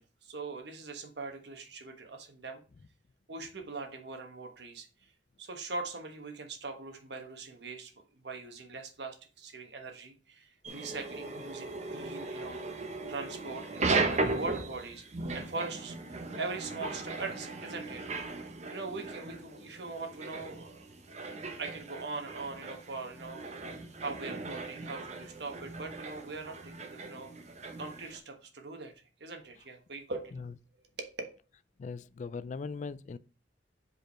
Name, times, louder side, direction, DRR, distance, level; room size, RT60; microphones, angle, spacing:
voice 1, 0.0-2.6 3.3-4.9 5.4-15.0 15.3-16.0 16.4-18.0 18.7-20.9 21.2-27.3 27.8-28.9 29.2-30.4 31.0-31.1, right 3 dB, 65° right, 1.3 m, -41 dB
sound 1, 10.6-28.2, right 3 dB, 40° right, 1.0 m, -37 dB
voice 2, 31.8-33.2, left 4 dB, 40° left, 0.3 m, -39 dB
5.1 x 4.8 x 4.4 m
head